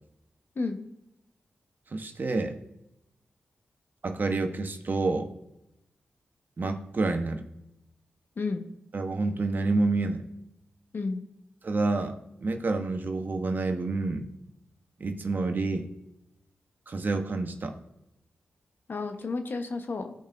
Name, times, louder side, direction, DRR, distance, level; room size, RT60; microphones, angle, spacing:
voice 1, 1.9-2.6 4.0-5.4 6.6-7.4 8.9-10.2 11.6-14.3 15.0-15.9 16.9-17.8, right 3 dB, 50° right, 6 dB, 1.1 m, -28 dB
voice 2, 18.9-20.1, left 3 dB, 60° left, 6 dB, 1.1 m, -31 dB
15.5 x 5.3 x 2.6 m, 0.86 s
cardioid pair, 45°, 4 cm